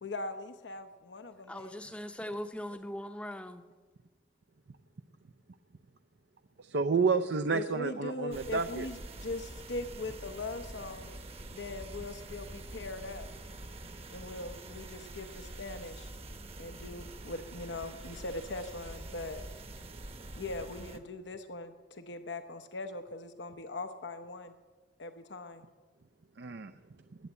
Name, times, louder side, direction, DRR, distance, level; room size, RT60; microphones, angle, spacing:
voice 1, 0.0-1.8 7.5-11.2 11.5-13.3 14.1-16.1 16.6-19.4 20.4-24.6 25.0-25.6, left 2 dB, 80° left, 8 dB, 0.8 m, -41 dB
voice 2, 1.5-3.6, equal, 5° left, 6 dB, 0.7 m, -40 dB
voice 3, 6.7-8.9 26.4-26.7, right 4 dB, 70° right, 8 dB, 0.6 m, -29 dB
sound 1, 8.3-21.0, right 2 dB, 35° right, 1.0 m, -46 dB
20.5 x 8.6 x 8.1 m, 1.4 s
head